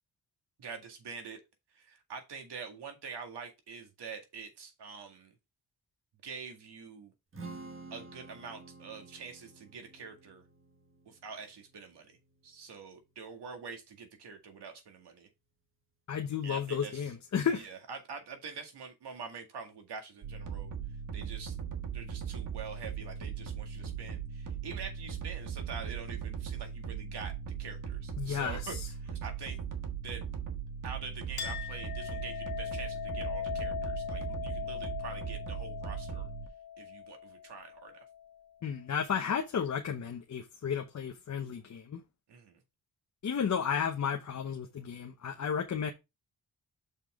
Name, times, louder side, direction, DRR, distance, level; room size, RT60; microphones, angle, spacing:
voice 1, 0.6-1.4 1.7-5.3 6.2-7.1 7.9-10.4 11.1-12.2 12.4-15.3 16.4-17.1 17.6-20.7 21.1-21.6 21.9-28.8 29.0-29.6 30.0-30.2 30.8-36.3 36.8-38.0 42.3-42.6, right 5 dB, 85° right, 2.1 m, -45 dB
Strum, 7.3-13.6, right 3 dB, 30° right, 1.4 m, -51 dB
voice 2, 16.1-17.7 28.2-28.9 38.6-42.0 43.2-45.9, left 7 dB, 45° left, 0.9 m, -33 dB
sound 1, 20.2-36.5, right 7 dB, 50° right, 1.4 m, -39 dB
Chink clink, 31.4-38.4, left 9 dB, 70° left, 2.0 m, -40 dB
6.9 x 5.6 x 3.6 m
wide cardioid pair, 145°, 39 cm